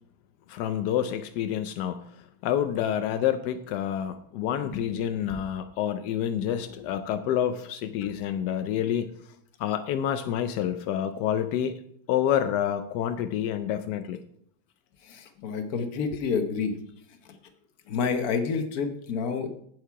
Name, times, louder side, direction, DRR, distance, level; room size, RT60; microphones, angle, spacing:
voice 1, 0.5-2.0 2.4-9.1 9.6-11.8 12.1-14.2, left 10 dB, 80° left, 9 dB, 0.9 m, -28 dB
voice 2, 4.6-5.4 15.0-16.8 17.9-19.5, left 5 dB, 55° left, 7 dB, 1.2 m, -29 dB
8.3 x 7.7 x 4.7 m, 0.69 s
omnidirectional pair, 2.3 m